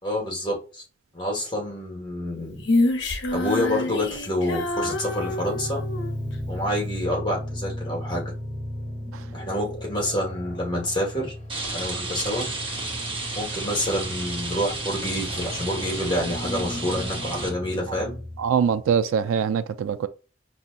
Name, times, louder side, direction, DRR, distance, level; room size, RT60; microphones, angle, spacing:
voice 1, 0.0-0.8 1.1-2.6 3.3-5.8 6.5-8.3 9.3-11.3 11.7-12.4 13.3-18.2, left 1 dB, 20° left, 1.4 m, -28 dB
Female singing, 2.6-6.2, left 2 dB, 65° left, 0.9 m, -26 dB
sound 1, 4.4-19.0, left 1 dB, 40° left, 1.0 m, -36 dB
Rain, 11.5-17.5, right 3 dB, 25° right, 0.9 m, -32 dB
voice 2, 18.4-20.1, right 7 dB, 90° right, 0.3 m, -23 dB
5.2 x 2.7 x 2.4 m
head